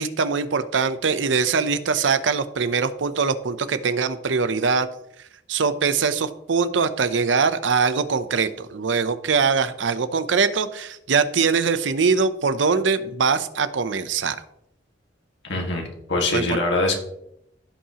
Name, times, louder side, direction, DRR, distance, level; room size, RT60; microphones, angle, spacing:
voice 1, 0.0-4.9 5.5-14.4 16.3-16.6, right 5 dB, 85° right, 12 dB, 0.6 m, -22 dB
voice 2, 15.4-17.0, left 2 dB, 70° left, 1 dB, 1.8 m, -23 dB
15.5 x 5.6 x 2.9 m, 0.79 s
head